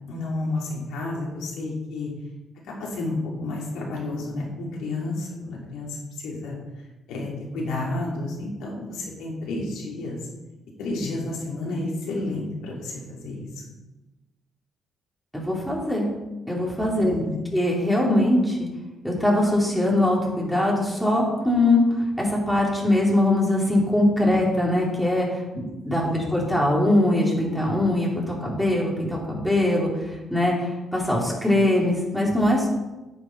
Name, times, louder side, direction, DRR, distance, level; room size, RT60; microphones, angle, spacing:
voice 1, 0.1-2.1 2.6-6.6 7.1-10.2 10.8-13.6 16.9-17.5 26.0-26.5, left 2 dB, 90° left, -3 dB, 2.9 m, -31 dB
voice 2, 15.3-16.1 16.5-17.1 17.5-18.7 19.0-29.9 30.3-32.7, left 1 dB, ahead, -4 dB, 3.4 m, -22 dB
10.5 x 7.4 x 4.6 m, 1.1 s
cardioid pair, 90°, 0 cm